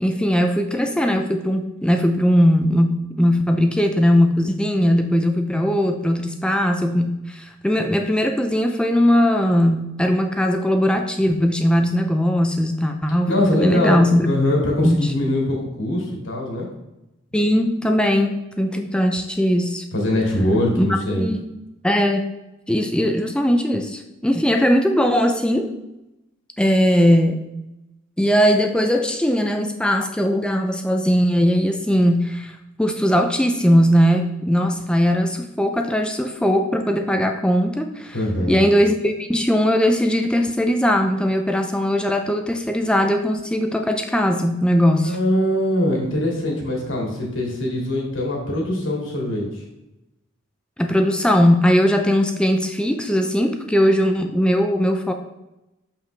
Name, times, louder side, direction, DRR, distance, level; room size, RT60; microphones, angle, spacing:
voice 1, 0.0-14.3 14.8-15.0 17.3-19.8 20.8-21.4 21.8-22.3 22.7-25.7 26.6-27.4 28.2-38.2 38.5-45.2 50.8-55.1, equal, 5° left, 4 dB, 0.4 m, -19 dB
voice 2, 13.3-16.7 19.9-21.3 38.1-38.6 45.0-49.6, left 1 dB, 70° left, -2 dB, 2.1 m, -22 dB
6.8 x 5.7 x 3.3 m, 0.93 s
head